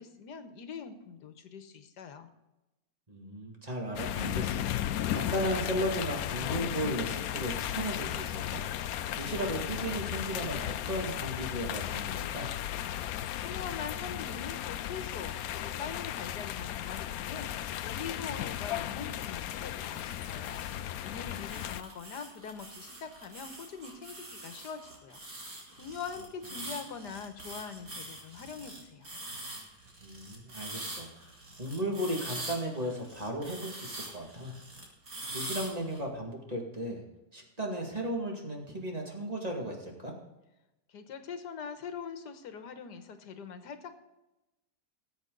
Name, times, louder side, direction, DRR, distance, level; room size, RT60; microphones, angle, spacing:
voice 1, 0.0-2.3 13.4-20.6 21.0-25.2 25.8-29.1 40.9-43.9, left 6 dB, 85° left, 8 dB, 1.7 m, -43 dB
voice 2, 3.1-12.5 30.0-31.1 31.6-34.5 35.3-37.0 37.3-40.1, equal, 25° right, 0 dB, 2.2 m, -35 dB
sound 1, 4.0-21.8, left 11 dB, 70° left, 1.0 m, -35 dB
sound 2, 19.7-20.7 21.2-36.0, right 1 dB, 60° right, 3.4 m, -44 dB
19.5 x 8.0 x 3.9 m, 0.97 s
omnidirectional pair, 1.7 m